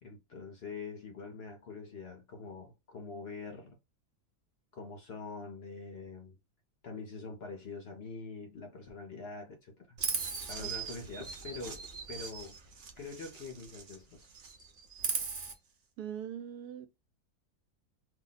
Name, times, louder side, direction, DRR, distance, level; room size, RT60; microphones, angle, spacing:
voice 1, 0.0-3.8 4.7-6.4 6.8-10.0 10.5-12.6 13.0-14.3, left 4 dB, 55° left, 0.8 m, -44 dB
Chirp tweet, 10.0-14.0 14.3-15.5, right 5 dB, 60° right, 0.5 m, -38 dB
voice 2, 16.0-16.9, right 9 dB, 90° right, 1.1 m, -41 dB
2.8 x 2.0 x 3.8 m
omnidirectional pair, 1.6 m